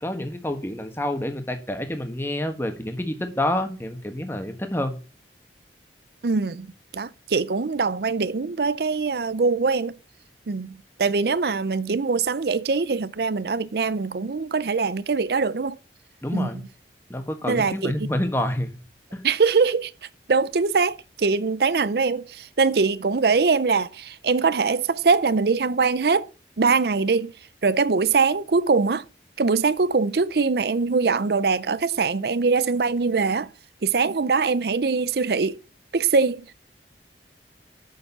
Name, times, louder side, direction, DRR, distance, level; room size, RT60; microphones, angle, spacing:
voice 1, 0.0-5.0 16.2-16.6 17.1-18.7 19.1-19.2, left 1 dB, 15° left, 1.4 m, -28 dB
voice 2, 6.2-6.7 6.9-10.0 10.5-15.8 16.3-16.5 17.5-18.1 19.2-19.9 20.3-26.3 26.6-27.3 27.6-29.0 29.4-33.5 33.8-35.6 35.9-36.5, right 4 dB, 60° right, 0.5 m, -22 dB
7.9 x 6.9 x 7.0 m
head